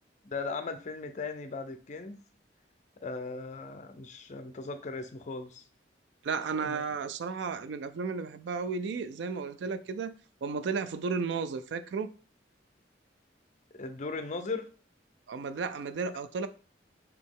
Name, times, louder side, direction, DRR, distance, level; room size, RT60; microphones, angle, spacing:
voice 1, 0.2-2.2 3.0-5.6 6.6-6.8 13.8-14.7, left 4 dB, 40° left, 0.5 m, -38 dB
voice 2, 6.2-10.1 10.4-12.1 15.3-16.5, right 5 dB, 70° right, 0.3 m, -33 dB
4.1 x 2.8 x 3.6 m
head